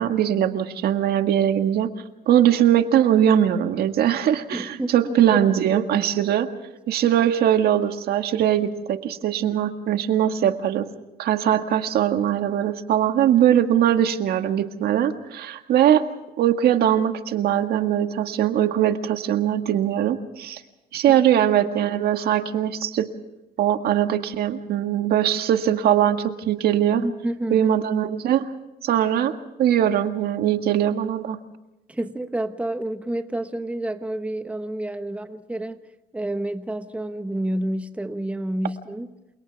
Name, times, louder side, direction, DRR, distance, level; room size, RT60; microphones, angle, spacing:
voice 1, 0.0-1.9 2.3-6.5 6.9-10.9 11.2-16.1 16.4-20.6 20.9-23.1 23.6-27.0 27.5-28.5 28.8-31.4, right 10 dB, 65° right, 7 dB, 1.8 m, -21 dB
voice 2, 4.5-5.4 5.7-5.9 21.1-21.2 27.0-27.7 31.9-35.8 36.1-39.1, right 1 dB, 10° right, 8 dB, 1.3 m, -29 dB
29.0 x 28.5 x 3.5 m, 0.98 s
cardioid pair, 110°, 17 cm